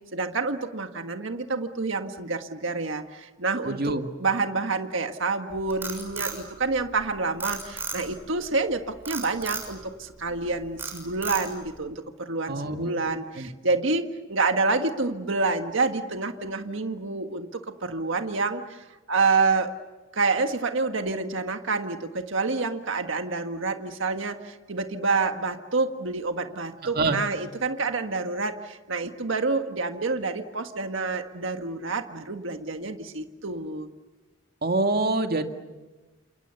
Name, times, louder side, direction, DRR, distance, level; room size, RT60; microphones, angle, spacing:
voice 1, 0.1-3.9 4.2-19.7 20.1-33.9, right 3 dB, 65° right, 6 dB, 1.6 m, -28 dB
voice 2, 3.6-4.1 12.5-13.5 26.9-27.2 34.6-35.4, right 2 dB, 50° right, 5 dB, 2.0 m, -26 dB
Frog, 5.5-7.0 7.4-8.3 9.1-9.7 10.2-10.5 10.8-11.7, right 4 dB, 10° right, 6.8 m, -34 dB
29.0 x 28.0 x 6.9 m, 1.2 s
head